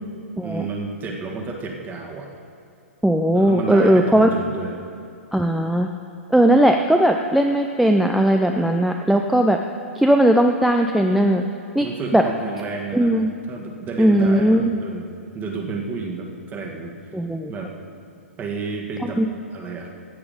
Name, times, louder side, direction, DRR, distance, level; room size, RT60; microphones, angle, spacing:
voice 1, 0.4-2.3 3.3-4.8 11.8-15.1 15.3-16.9 17.5-18.0 18.4-19.2 19.5-19.9, right 4 dB, 25° right, 1 dB, 1.7 m, -31 dB
voice 2, 3.0-4.3 5.3-5.9 6.3-9.6 10.0-11.4 11.7-11.9 12.1-12.2 12.9-13.3 14.0-14.8 17.1-17.5 19.0-19.3, right 1 dB, ahead, 3 dB, 0.5 m, -18 dB
14.5 x 8.8 x 5.1 m, 2.6 s
figure-of-eight pair, 115°, 7 cm